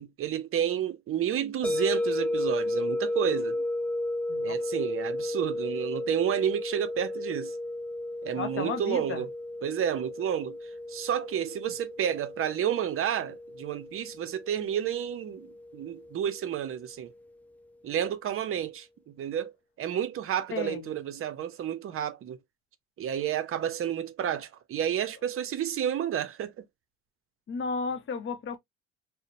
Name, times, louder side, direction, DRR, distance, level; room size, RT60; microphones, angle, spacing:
voice 1, 0.0-3.6 4.4-7.5 8.2-9.3 9.6-10.6 10.9-17.1 17.8-19.5 19.8-22.4 23.0-26.6, right 9 dB, 45° right, 0.5 m, -31 dB
sound 1, 1.6-16.6, left 1 dB, 5° left, 0.3 m, -34 dB
voice 2, 8.4-9.3 20.5-21.0 27.5-28.6, left 5 dB, 45° left, 0.7 m, -34 dB
2.8 x 2.0 x 2.5 m
cardioid pair, 100°, 30 cm